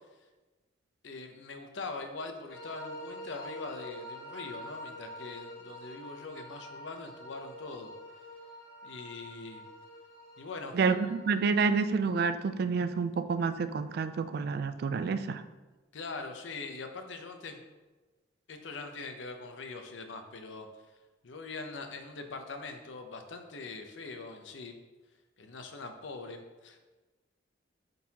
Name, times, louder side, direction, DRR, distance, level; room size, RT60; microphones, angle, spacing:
voice 1, 1.0-7.9 8.8-9.7 10.4-10.8 15.9-17.6 18.5-20.7 21.2-24.8 25.4-26.8, left 3 dB, 75° left, 5 dB, 0.7 m, -42 dB
sound 1, 2.5-11.4, equal, 50° left, 1.1 m, -46 dB
voice 2, 10.7-15.4, right 5 dB, 55° right, 11 dB, 0.3 m, -29 dB
8.4 x 3.9 x 2.9 m, 1.2 s
head